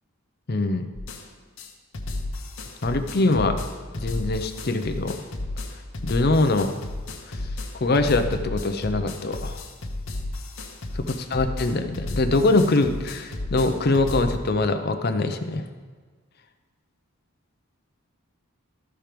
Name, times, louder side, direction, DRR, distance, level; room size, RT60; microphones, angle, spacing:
voice 1, 0.5-0.9 2.8-3.6 4.0-5.2 6.0-6.7 7.3-7.5 7.7-9.6 10.9-15.7, left 2 dB, 45° left, 7 dB, 0.6 m, -23 dB
sound 1, 0.9-1.2 1.6-1.7 1.9-14.3, left 2 dB, 65° left, 1.0 m, -33 dB
13.5 x 4.5 x 5.1 m, 1.5 s
head